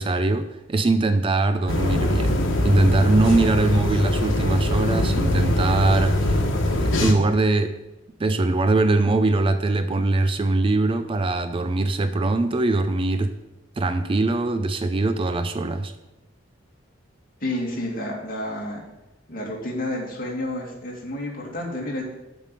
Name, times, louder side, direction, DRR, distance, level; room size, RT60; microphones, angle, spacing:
voice 1, 0.0-6.3 6.8-7.8 8.2-13.3 13.8-15.9, right 2 dB, 25° right, 0.4 m, -22 dB
sound 1, 1.7-7.1, left 1 dB, 85° left, 1.3 m, -22 dB
voice 2, 17.4-18.8 19.3-22.0, left 1 dB, 50° left, 2.3 m, -30 dB
7.3 x 5.5 x 6.8 m
head